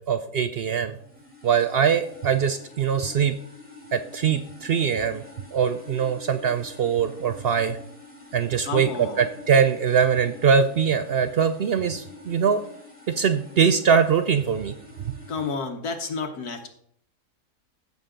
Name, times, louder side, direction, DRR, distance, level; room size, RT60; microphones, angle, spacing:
voice 1, 0.1-0.9 1.4-3.4 3.9-5.2 5.5-7.8 8.3-12.6 13.1-14.7, right 7 dB, 75° right, 9 dB, 0.5 m, -22 dB
sound 1, 0.9-15.6, left 3 dB, 5° right, 3.0 m, -47 dB
voice 2, 8.6-9.3 15.3-16.7, left 4 dB, 75° left, 4 dB, 1.6 m, -31 dB
15.5 x 6.4 x 3.8 m, 0.64 s
omnidirectional pair, 1.7 m